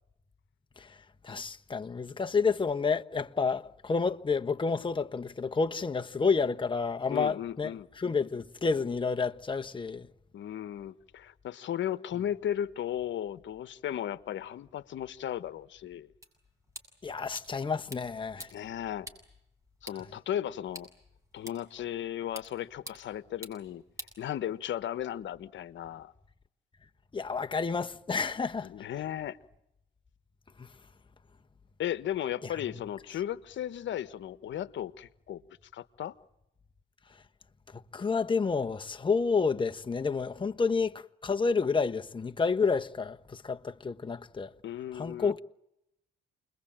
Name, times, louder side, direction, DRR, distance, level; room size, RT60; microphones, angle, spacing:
voice 1, 1.2-7.7 8.0-10.1 17.0-18.5 27.1-28.7 30.6-30.7 37.7-44.5 44.9-45.4, left 5 dB, 25° left, 1.2 m, -30 dB
voice 2, 7.1-7.9 10.3-16.1 18.5-19.1 19.8-20.9 21.3-23.8 24.2-26.1 28.6-29.4 31.8-35.4 35.7-36.1 44.6-45.3, left 11 dB, 70° left, 1.3 m, -35 dB
sound 1, 16.2-24.8, equal, 15° right, 7.4 m, -50 dB
29.0 x 22.0 x 8.9 m
cardioid pair, 90°, 20 cm